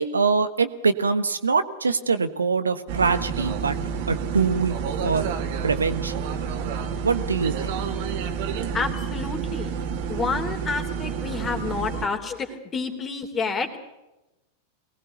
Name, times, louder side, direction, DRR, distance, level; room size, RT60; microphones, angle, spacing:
voice 1, 0.0-3.8 4.1-4.8 5.0-5.3 5.6-6.2 7.0-7.8, right 4 dB, 75° right, 11 dB, 1.3 m, -23 dB
sound 1, 2.9-12.1, right 6 dB, 50° right, 2.4 m, -29 dB
voice 2, 8.7-9.7 10.1-13.8, left 4 dB, 20° left, 5 dB, 3.3 m, -29 dB
23.5 x 19.5 x 8.2 m, 0.98 s
figure-of-eight pair, 90°, 0 cm